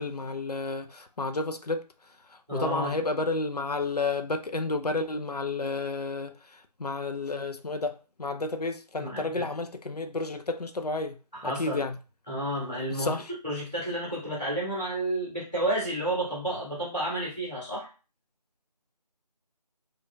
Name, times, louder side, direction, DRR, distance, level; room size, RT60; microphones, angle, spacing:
voice 1, 0.0-1.8 2.5-11.2 11.4-12.0 12.9-13.3, left 3 dB, 70° left, 0.5 m, -31 dB
voice 2, 2.5-2.9 9.0-9.2 11.3-11.8 12.3-13.1 13.4-17.9, right 1 dB, 5° left, 1.2 m, -31 dB
4.5 x 2.4 x 2.3 m
figure-of-eight pair, 165°, 21 cm